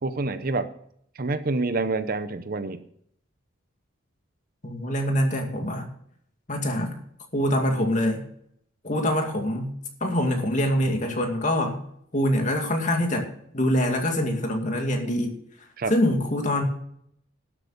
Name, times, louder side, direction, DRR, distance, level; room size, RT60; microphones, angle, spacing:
voice 1, 0.0-0.7 1.2-2.8 15.8-15.9, right 3 dB, 45° right, 11 dB, 0.8 m, -27 dB
voice 2, 4.6-5.9 6.5-7.0 7.3-8.2 8.8-9.7 10.0-11.8 12.1-13.3 13.5-15.3 15.9-16.6, left 1 dB, 40° left, 4 dB, 2.3 m, -24 dB
12.0 x 8.3 x 6.6 m, 0.68 s
head